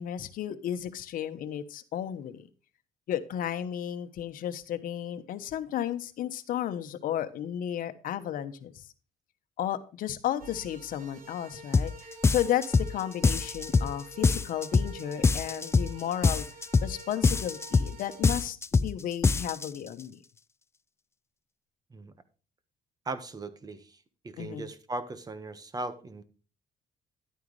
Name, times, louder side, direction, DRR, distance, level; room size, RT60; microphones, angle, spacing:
voice 1, 0.0-2.5 3.1-8.9 9.6-16.5 16.8-20.2 24.4-24.7, left 11 dB, 70° left, 10 dB, 1.1 m, -33 dB
sound 1, 10.4-18.4, right 3 dB, 65° right, 4.0 m, -48 dB
sound 2, 11.7-11.9 12.2-12.9 13.2-13.9 14.2-14.9 15.2-15.9 16.2-16.9 17.2-17.9 18.2-18.9 19.2-19.7, left 4 dB, 15° left, 0.5 m, -24 dB
voice 2, 23.0-24.0 24.2-26.2, right 2 dB, 25° right, 11 dB, 1.4 m, -38 dB
11.5 x 9.3 x 3.3 m, 0.36 s
cardioid pair, 110°, 15 cm